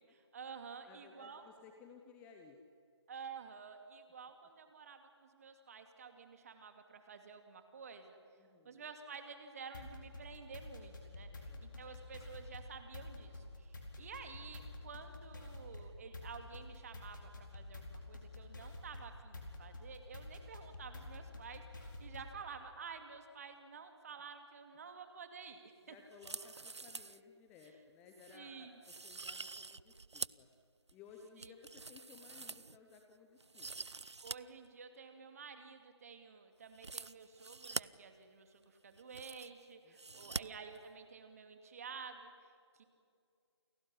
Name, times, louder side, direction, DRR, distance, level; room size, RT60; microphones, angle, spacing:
voice 1, 0.0-1.4 3.1-8.2 8.6-26.0 28.3-28.8 31.4-31.5 34.2-42.8, right 5 dB, 30° right, 7 dB, 2.5 m, -51 dB
voice 2, 0.9-2.6 8.4-8.8 11.3-11.8 25.9-30.5 30.9-33.9 39.8-40.5, left 5 dB, 10° left, 3 dB, 0.9 m, -59 dB
sound 1, 9.7-22.4, left 2 dB, 45° left, 4.3 m, -49 dB
sound 2, 26.1-27.2 27.6-27.7 28.2-28.4 28.8-30.5 30.9-33.0 33.4-34.4 34.6-34.7 36.7-37.8 38.6-38.7 38.9-39.6 40.0-40.4 40.7-40.8, right 3 dB, 75° right, 0.6 m, -45 dB
29.0 x 17.0 x 10.0 m, 2.3 s
figure-of-eight pair, 150°, 15 cm